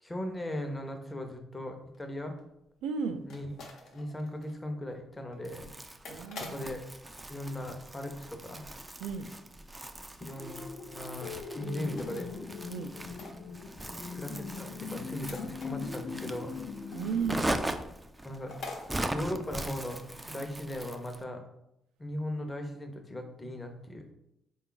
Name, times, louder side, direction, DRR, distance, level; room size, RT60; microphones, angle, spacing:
voice 1, 0.0-2.3 3.2-3.6 3.9-5.7 6.3-6.8 7.3-8.6 10.2-10.5 10.9-12.3 14.1-16.5 18.2-18.6 19.1-20.0 20.3-21.4 22.0-24.0, left 1 dB, 20° left, 4 dB, 0.6 m, -38 dB
sound 1, 1.8-8.5 8.7-9.2 9.4-9.5 9.8-9.9 10.3-10.4 11.1-12.3 12.5-13.9 14.2-17.4 17.8-17.9 18.1-18.2 18.5-18.9, left 3 dB, 75° left, 0.8 m, -48 dB
voice 2, 2.8-3.2 6.1-6.6 9.0-9.3 12.7-12.9 16.9-17.6, right 6 dB, 90° right, 7 dB, 0.3 m, -34 dB
Crumpling crinkling, 5.4-21.2, right 1 dB, 15° right, 0.3 m, -40 dB
sound 2, 10.4-17.4, left 5 dB, 55° left, 0.4 m, -41 dB
3.7 x 2.3 x 3.8 m, 0.83 s
cardioid pair, 90°, 0 cm